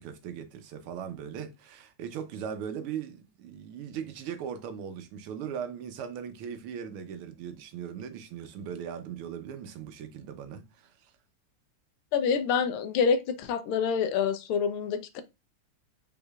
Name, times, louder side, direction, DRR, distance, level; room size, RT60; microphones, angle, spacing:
voice 1, 0.0-11.1, right 8 dB, 80° right, 1.6 m, -39 dB
voice 2, 12.1-15.2, left 6 dB, 85° left, 1.5 m, -27 dB
5.3 x 3.9 x 2.3 m
omnidirectional pair, 2.4 m